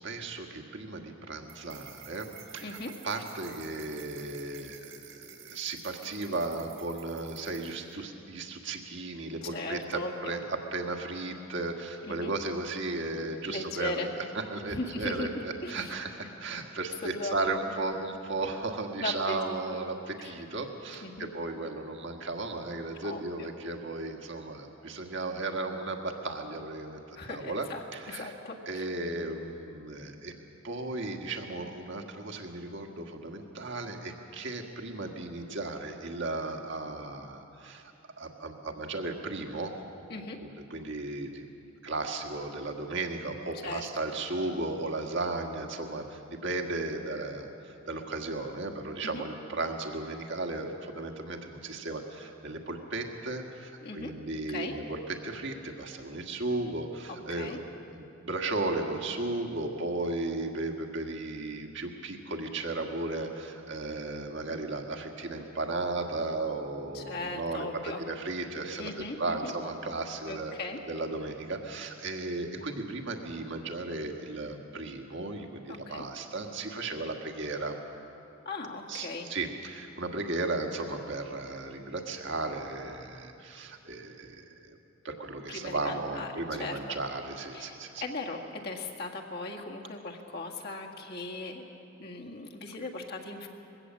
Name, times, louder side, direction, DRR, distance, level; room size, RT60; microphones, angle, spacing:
voice 1, 0.0-2.8 3.0-27.7 27.9-28.3 28.6-30.3 30.6-37.9 38.2-39.7 40.7-41.5 41.8-57.6 57.9-68.9 69.2-70.5 70.9-77.8 78.9-84.8 85.0-88.0, right 2 dB, 65° right, 3 dB, 1.7 m, -35 dB
sound 1, 1.5-7.9, right 8 dB, 85° right, 4.1 m, -51 dB
voice 2, 2.6-2.9 9.4-10.4 12.0-12.3 13.5-14.1 14.7-15.3 15.6-16.0 17.0-17.5 19.0-19.4 19.7-19.8 20.2-20.3 21.0-21.3 23.0-23.5 27.2-28.9 40.1-40.4 43.5-43.9 49.0-49.2 53.8-54.1 54.5-54.8 57.1-57.6 66.9-68.0 68.8-69.5 70.3-70.8 75.7-76.1 78.5-79.3 85.5-87.0 87.5-91.6 92.0-93.5, left 2 dB, 55° left, 0 dB, 1.9 m, -38 dB
21.0 x 16.5 x 7.5 m, 2.7 s
head